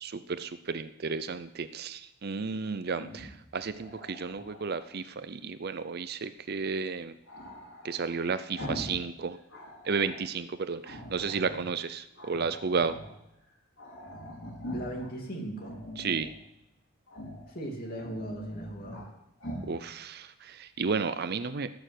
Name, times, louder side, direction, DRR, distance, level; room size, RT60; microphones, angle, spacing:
voice 1, 0.0-3.3 3.5-7.1 7.8-9.4 9.9-13.0 16.0-16.3 19.7-21.7, right 5 dB, 45° right, 13 dB, 0.5 m, -32 dB
Growling, 2.9-4.9 7.3-9.0 9.3-10.2 10.8-11.7 12.1-13.1 13.5-13.6 13.8-15.1 15.6-16.4 17.1-17.5 17.8-19.1 19.4-19.7, equal, 60° left, 4.3 m, -42 dB
voice 2, 14.7-15.8 17.5-19.1, right 1 dB, 40° left, 1 dB, 2.8 m, -38 dB
16.0 x 6.7 x 7.9 m, 0.86 s
head